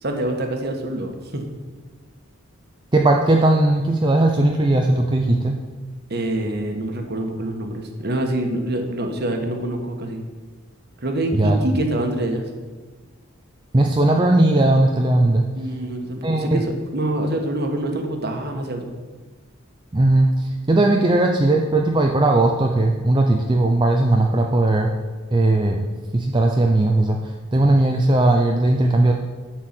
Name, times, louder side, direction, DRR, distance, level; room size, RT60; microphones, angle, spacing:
voice 1, 0.0-1.4 6.1-10.2 11.0-12.5 15.6-18.9, right 1 dB, 50° right, 4 dB, 1.4 m, -26 dB
voice 2, 2.9-5.6 11.3-11.6 13.7-15.5 16.2-16.6 19.9-24.9 25.3-25.9 26.1-29.1, right 2 dB, 20° right, 1 dB, 0.5 m, -18 dB
11.5 x 4.6 x 7.5 m, 1.4 s
head